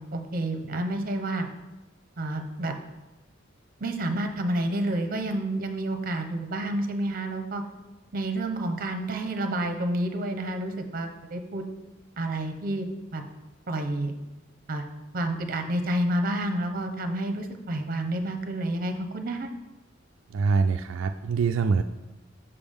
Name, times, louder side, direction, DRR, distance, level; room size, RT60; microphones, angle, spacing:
voice 1, 0.0-1.5 2.2-2.7 3.8-7.6 8.1-11.6 12.2-13.2 13.7-14.1 14.7-14.9 15.1-19.5, right 1 dB, 45° right, 6 dB, 0.7 m, -29 dB
voice 2, 20.3-21.8, right 4 dB, 80° right, 6 dB, 0.3 m, -24 dB
7.0 x 6.9 x 3.5 m, 1.1 s
head